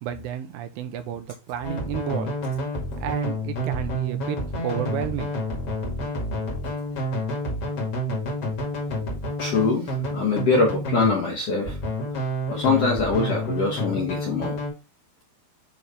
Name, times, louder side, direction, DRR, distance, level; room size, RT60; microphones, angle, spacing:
voice 1, 0.0-2.6 3.0-5.4, right 11 dB, 85° right, 2.5 m, -31 dB
sound 1, 1.6-11.2 11.6-14.7, equal, 45° left, 2.7 m, -29 dB
voice 2, 9.4-11.8 12.5-14.6, left 4 dB, 65° left, 1.6 m, -23 dB
9.2 x 3.2 x 3.5 m
omnidirectional pair, 4.2 m